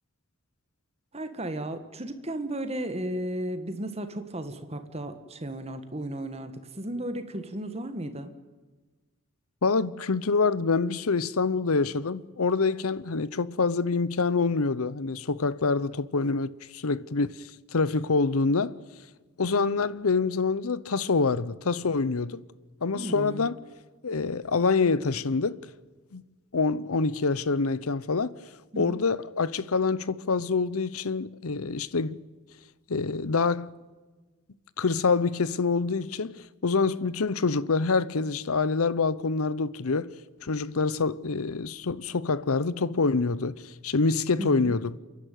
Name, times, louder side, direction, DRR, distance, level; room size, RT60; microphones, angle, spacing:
voice 1, 1.1-8.3 22.9-23.4 28.7-29.0 44.4-44.8, right 1 dB, 30° right, 1.6 m, -34 dB
voice 2, 9.6-17.4 17.7-18.7 19.4-22.4 22.8-23.5 24.0-25.6 26.1-26.2 26.5-28.3 28.8-32.2 32.9-33.7 34.8-40.1 40.4-43.5 43.8-44.9, left 4 dB, 80° left, 0.8 m, -26 dB
29.0 x 11.5 x 9.3 m
head